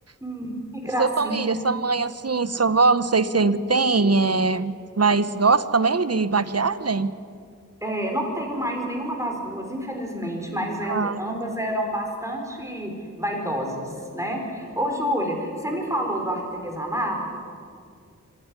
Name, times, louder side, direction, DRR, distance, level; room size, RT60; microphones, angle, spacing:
voice 1, 0.2-1.6 7.8-12.9 13.2-17.2, equal, 10° right, 1 dB, 4.8 m, -28 dB
voice 2, 1.0-7.1 10.8-11.2, right 4 dB, 50° right, 14 dB, 0.8 m, -21 dB
26.0 x 11.5 x 9.7 m, 2.3 s
wide cardioid pair, 50°, 32 cm